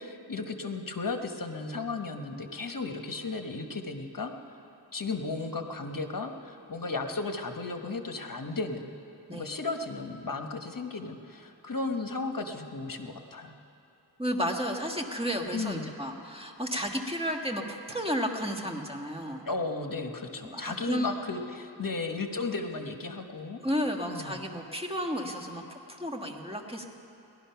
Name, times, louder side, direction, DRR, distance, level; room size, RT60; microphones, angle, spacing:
voice 1, 0.0-4.3 4.9-8.9 9.3-13.6 15.5-15.9 19.4-23.6 24.1-24.4, left 3 dB, 50° left, 5 dB, 1.2 m, -35 dB
voice 2, 14.2-19.5 20.4-21.1 23.6-26.9, equal, 15° right, 2 dB, 1.5 m, -32 dB
18.0 x 12.0 x 5.8 m, 2.9 s
wide cardioid pair, 50°, 42 cm